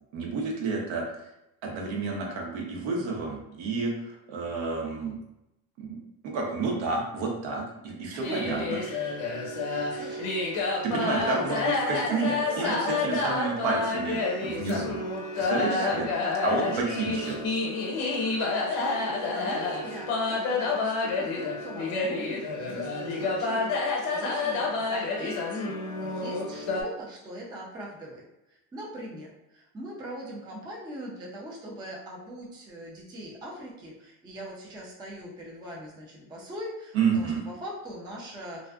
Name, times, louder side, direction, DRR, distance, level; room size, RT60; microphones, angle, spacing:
voice 1, 0.1-1.1 1.6-5.1 5.8-8.8 10.8-12.8 13.0-15.0 15.4-16.1 16.4-17.4 36.9-37.4, right 4 dB, 70° right, -1 dB, 0.9 m, -30 dB
voice 2, 8.1-8.6 8.8-9.0 9.6-11.6 12.1-13.2 15.7-16.3 16.8-17.0 18.4-28.2 28.7-38.7, equal, 10° right, -3 dB, 0.3 m, -41 dB
sound 1, 8.2-26.8, left 3 dB, 80° left, 0.9 m, -29 dB
2.4 x 2.4 x 2.2 m, 0.90 s
cardioid pair, 120°, 45 cm